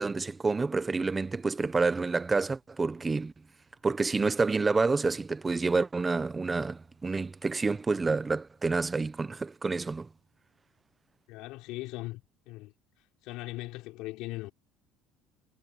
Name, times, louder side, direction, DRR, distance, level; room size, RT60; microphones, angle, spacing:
voice 1, 0.0-3.3 3.8-10.1, right 4 dB, 20° right, 0.9 m, -28 dB
voice 2, 11.3-12.7 13.2-14.5, left 19 dB, 75° left, 4.2 m, -39 dB
cardioid pair, 125°, 0 cm